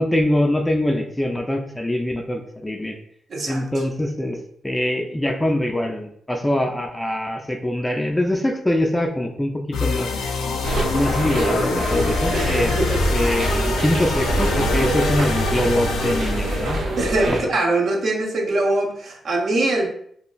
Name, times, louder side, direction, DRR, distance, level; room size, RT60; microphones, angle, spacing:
voice 1, 0.0-3.0 3.5-4.4 4.6-10.1 10.9-12.7 13.1-16.8 17.3-17.5, left 1 dB, 10° left, 3 dB, 0.4 m, -23 dB
voice 2, 3.3-3.6 12.3-13.2 17.0-19.9, right 2 dB, 60° right, 1 dB, 0.6 m, -23 dB
sound 1, 9.7-16.8, left 3 dB, 90° left, 0.4 m, -25 dB
sound 2, 10.6-17.4, right 1 dB, 90° right, 0.7 m, -25 dB
2.2 x 2.1 x 3.8 m, 0.66 s
cardioid pair, 85°, 0 cm